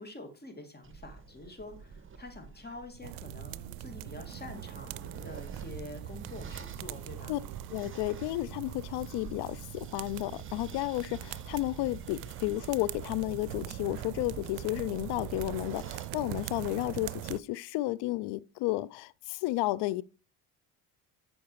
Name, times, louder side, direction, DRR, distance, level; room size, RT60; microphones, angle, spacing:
voice 1, 0.0-7.4, left 2 dB, 20° left, 2.4 m, -46 dB
sound 1, 0.8-16.1, right 5 dB, 25° right, 1.2 m, -48 dB
sound 2, 3.0-17.4, right 16 dB, 85° right, 0.5 m, -42 dB
sound 3, 4.1-11.6, right 10 dB, 50° right, 0.8 m, -52 dB
voice 2, 7.7-20.0, left 18 dB, 65° left, 0.6 m, -32 dB
8.6 x 5.3 x 4.7 m
supercardioid pair, 70°, 45 cm